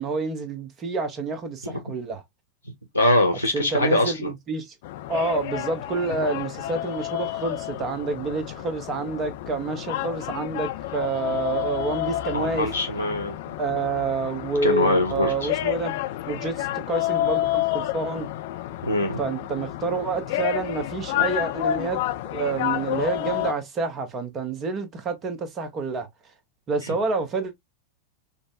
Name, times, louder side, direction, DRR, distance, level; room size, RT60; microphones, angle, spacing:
voice 1, 0.0-2.2 3.5-4.7 5.1-12.7 13.6-15.9 16.3-18.3 19.2-22.0 22.3-26.1 26.7-27.5, right 4 dB, 30° right, 0.9 m, -28 dB
voice 2, 2.9-4.3 12.3-13.4 14.6-15.5 18.8-19.2, left 1 dB, 90° right, 0.6 m, -23 dB
sound 1, 4.8-23.5, left 13 dB, 50° left, 0.4 m, -30 dB
5.0 x 2.1 x 2.2 m
figure-of-eight pair, 90°, 0 cm